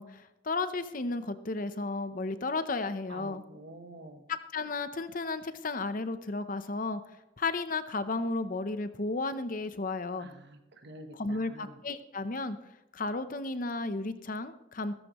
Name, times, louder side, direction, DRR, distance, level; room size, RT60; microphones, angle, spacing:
voice 1, 0.0-3.4 4.3-7.0 7.4-10.3 11.1-12.6 12.9-14.9, left 3 dB, 45° left, 11 dB, 0.7 m, -33 dB
voice 2, 3.1-4.2 10.2-11.8, right 1 dB, 60° right, 7 dB, 1.1 m, -48 dB
15.0 x 13.5 x 3.1 m, 0.95 s
head